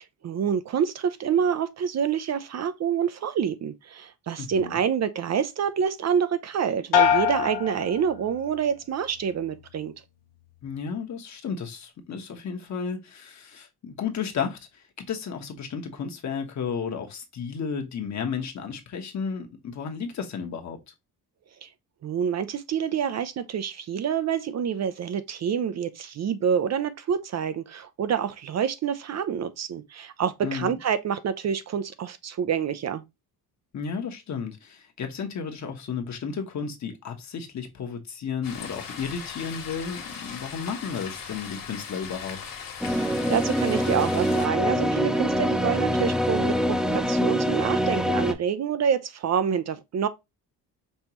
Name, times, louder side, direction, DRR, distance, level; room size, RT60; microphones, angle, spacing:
voice 1, 0.2-9.9 21.6-21.7 22.0-33.0 42.8-50.1, right 7 dB, 45° right, 0.5 m, -27 dB
voice 2, 4.4-4.8 10.6-20.8 30.4-30.8 33.7-42.4, left 6 dB, 45° left, 1.1 m, -33 dB
sound 1, 6.9-8.7 9.1-9.6, left 8 dB, 85° left, 1.2 m, -25 dB
sound 2, 38.4-44.5, left 6 dB, 65° left, 1.6 m, -39 dB
sound 3, 42.8-48.3, equal, ahead, 0.7 m, -24 dB
5.4 x 2.9 x 2.9 m
cardioid pair, 130°, 38 cm